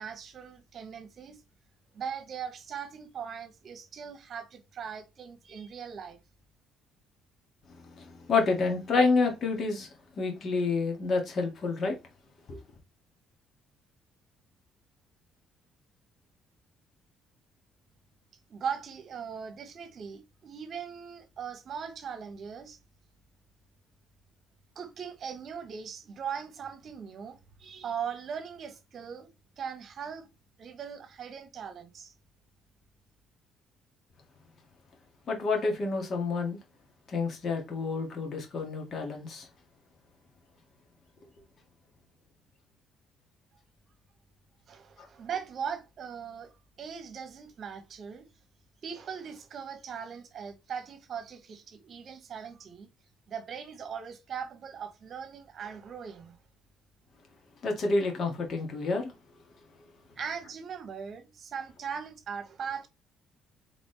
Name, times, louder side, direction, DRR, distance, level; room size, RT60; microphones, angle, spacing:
voice 1, 0.0-1.4 1.9-6.2 18.5-22.8 24.7-30.3 30.6-32.1 44.7-48.3 48.8-52.9 53.3-56.4 60.2-62.9, right 7 dB, 50° right, 1.2 m, -39 dB
voice 2, 7.7-9.9 10.2-12.0 12.5-12.6 35.3-36.6 37.1-39.5 45.0-45.1 57.6-59.1, left 3 dB, 50° left, 1.9 m, -29 dB
4.0 x 3.7 x 3.3 m
cardioid pair, 90°, 0 cm